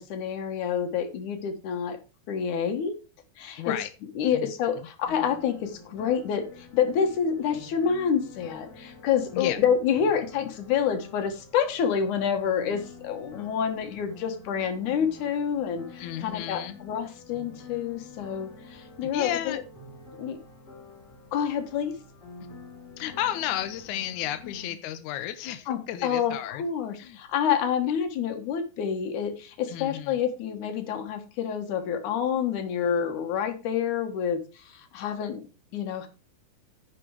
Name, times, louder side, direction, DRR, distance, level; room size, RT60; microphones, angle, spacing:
voice 1, 0.0-2.0 2.3-3.0 3.4-3.7 4.2-19.6 20.2-20.4 21.3-21.9 24.4-24.5 25.7-35.4 35.7-36.1, left 7 dB, 60° left, 6 dB, 2.5 m, -28 dB
voice 2, 3.6-3.9 4.3-4.5 9.3-9.6 16.0-16.8 19.1-19.6 23.0-26.6 27.0-27.2 29.7-30.2, left 11 dB, 80° left, 9 dB, 1.7 m, -32 dB
sound 1, 5.1-24.7, left 3 dB, 45° left, 4.2 m, -48 dB
9.8 x 6.0 x 4.8 m, 0.32 s
omnidirectional pair, 4.4 m